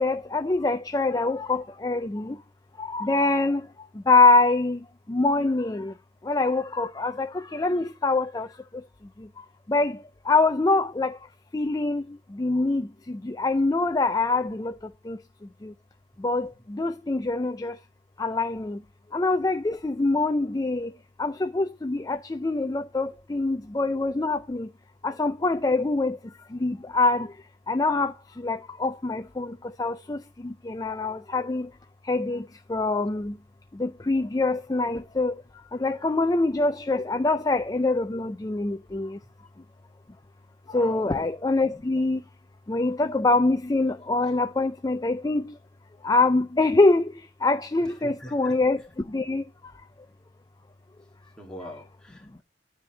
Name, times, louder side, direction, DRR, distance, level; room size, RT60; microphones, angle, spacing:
voice 1, 0.0-2.4 2.8-3.6 4.1-4.8 5.1-5.9 6.2-8.5 9.2-9.3 9.7-10.0 10.3-11.2 11.5-12.0 12.3-14.7 15.0-15.2 15.6-15.7 16.2-17.8 18.2-18.8 19.1-20.9 21.2-24.7 25.0-26.2 26.5-27.3 27.7-31.7 32.0-33.4 33.7-35.4 35.7-39.2 40.7-42.2 42.7-45.5 46.0-47.1 47.4-48.8 49.1-49.4, left 3 dB, 20° left, 0.4 m, -24 dB
voice 2, 40.7-41.0 41.3-41.4 47.8-48.6 51.4-52.4, left 1 dB, 5° left, 1.6 m, -43 dB
9.7 x 4.3 x 5.6 m
head